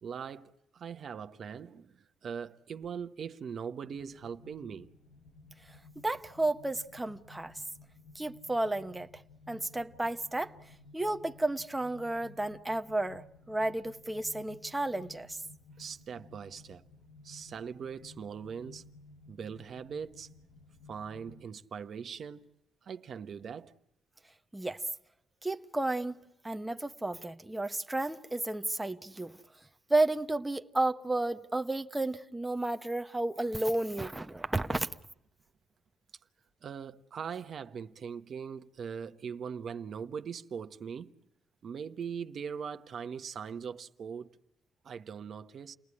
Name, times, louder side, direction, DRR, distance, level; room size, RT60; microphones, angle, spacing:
voice 1, 0.0-4.9 15.8-16.8 17.2-18.9 19.3-20.3 20.9-22.5 22.8-23.7 36.6-41.1 41.6-44.3 44.8-45.7, right 7 dB, 55° right, 1.1 m, -41 dB
sound 1, 3.9-21.4, left 3 dB, 85° left, 6.3 m, -56 dB
voice 2, 6.0-7.6 8.1-9.2 9.5-10.6 10.9-15.4 24.5-24.8 25.4-26.2 26.4-29.4 29.9-34.9, right 2 dB, 10° right, 1.1 m, -32 dB
29.5 x 19.5 x 9.8 m
cardioid pair, 90°, 0 cm